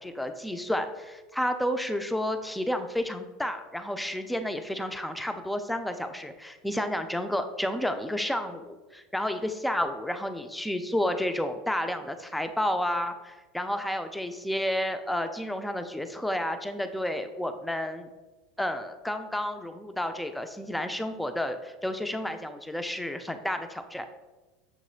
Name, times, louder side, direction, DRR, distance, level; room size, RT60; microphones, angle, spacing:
voice 1, 0.0-18.1 18.6-24.0, left 1 dB, 5° left, 8 dB, 0.4 m, -31 dB
6.6 x 3.0 x 2.3 m, 1.2 s
hypercardioid pair, 100°, 0 cm